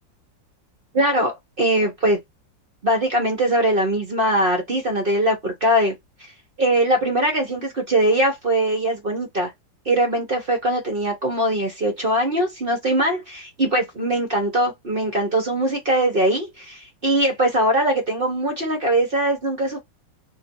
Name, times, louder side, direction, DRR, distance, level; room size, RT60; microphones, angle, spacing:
voice 1, 0.9-2.2 2.8-6.0 6.6-9.5 9.8-19.8, right 1 dB, 40° right, 0.9 m, -21 dB
3.0 x 2.6 x 4.4 m
omnidirectional pair, 2.0 m